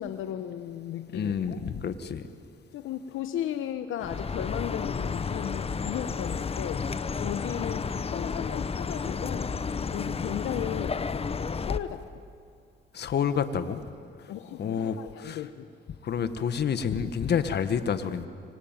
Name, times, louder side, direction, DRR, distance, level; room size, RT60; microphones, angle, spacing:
voice 1, 0.0-1.6 2.7-6.9 7.1-9.5 9.9-11.1 11.6-12.0 14.3-15.7, left 10 dB, 85° left, 9 dB, 1.1 m, -35 dB
voice 2, 1.1-2.2 7.6-7.8 12.9-13.8 14.6-15.4 16.0-18.3, left 7 dB, 60° left, 10 dB, 1.7 m, -29 dB
Chirp tweet, 4.0-11.8, left 5 dB, 30° left, 1.0 m, -32 dB
26.0 x 24.0 x 9.2 m, 2.2 s
cardioid pair, 90°, 20 cm